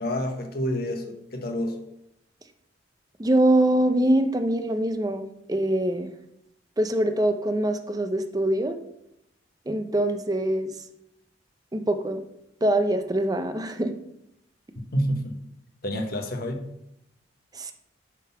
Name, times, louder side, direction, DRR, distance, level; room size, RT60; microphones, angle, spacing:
voice 1, 0.0-1.8 14.9-15.3 15.8-16.6, equal, 55° left, 4 dB, 1.0 m, -28 dB
voice 2, 3.2-6.1 6.8-8.8 9.7-10.7 11.7-12.2 12.6-14.0 17.5-17.7, right 1 dB, 20° right, 8 dB, 0.5 m, -23 dB
8.3 x 3.8 x 5.7 m, 0.80 s
head